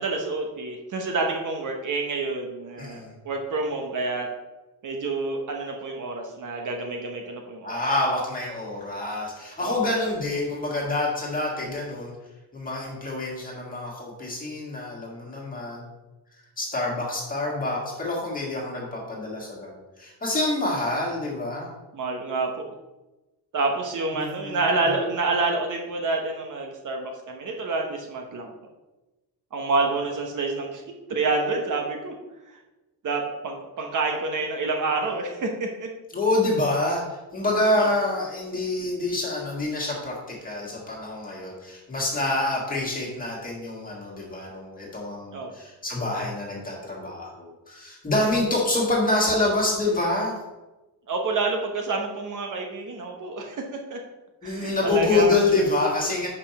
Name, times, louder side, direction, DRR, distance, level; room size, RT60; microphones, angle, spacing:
voice 1, 0.0-4.3 4.8-7.8 9.6-9.8 21.9-22.7 23.5-28.5 29.5-30.8 31.1-32.1 33.0-35.9 37.8-37.9 45.3-45.5 51.1-53.6 53.9-54.0 54.4-55.4, right 3 dB, 50° right, 2 dB, 0.9 m, -28 dB
voice 2, 2.8-3.1 7.6-12.1 12.5-15.9 16.6-21.7 24.1-24.6 36.1-50.4 54.4-56.3, left 2 dB, 20° left, -3 dB, 1.8 m, -27 dB
5.4 x 5.0 x 5.8 m, 1.1 s
cardioid pair, 175°, 41 cm